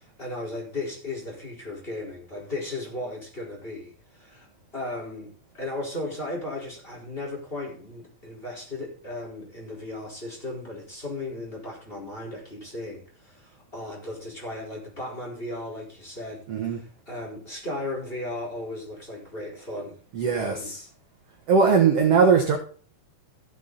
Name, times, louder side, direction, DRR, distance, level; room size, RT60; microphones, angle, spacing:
voice 1, 0.0-4.5 4.7-20.0 20.4-20.7, left 2 dB, 15° left, 4.3 m, -36 dB
voice 2, 16.5-16.8 20.1-20.9 21.5-22.6, right 5 dB, 55° right, 2.0 m, -20 dB
15.5 x 7.4 x 4.0 m
omnidirectional pair, 4.0 m